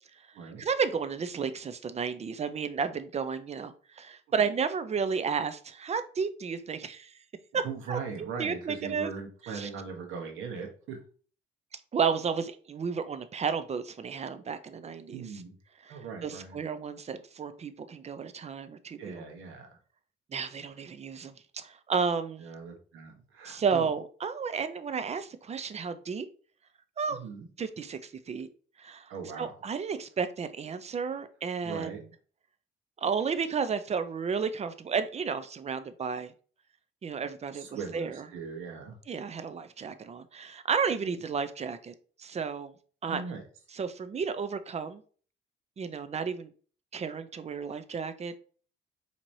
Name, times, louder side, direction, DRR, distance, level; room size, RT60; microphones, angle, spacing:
voice 1, 0.6-7.1 7.5-9.1 9.5-9.7 11.9-15.4 15.8-19.2 20.3-22.5 23.4-26.3 27.0-27.2 27.6-28.5 28.8-29.1 29.4-32.0 33.0-36.3 37.0-37.7 37.9-38.3 39.1-41.9 42.2-42.7 43.0-43.2 43.7-45.0 45.8-46.5 46.9-48.4, right 6 dB, 35° right, 11 dB, 0.5 m, -32 dB
voice 2, 7.5-11.0 15.1-15.6 15.9-16.6 19.0-19.7 22.4-23.9 27.1-27.5 29.1-29.5 31.6-32.0 37.5-39.0 41.1-41.2 43.1-43.4, right 5 dB, 85° right, 3 dB, 1.1 m, -40 dB
4.5 x 2.9 x 2.7 m, 0.42 s
cardioid pair, 90°, 20 cm